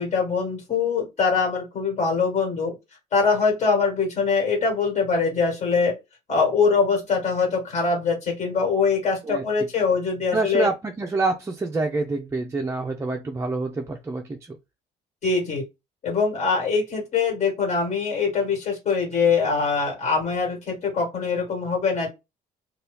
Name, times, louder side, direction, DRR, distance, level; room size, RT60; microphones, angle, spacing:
voice 1, 0.0-2.7 3.1-6.0 6.3-10.7 15.2-15.6 16.0-22.1, left 5 dB, 45° left, 1.6 m, -23 dB
voice 2, 10.3-14.6, right 3 dB, 15° right, 0.4 m, -27 dB
2.7 x 2.3 x 3.4 m
cardioid pair, 110°, 17 cm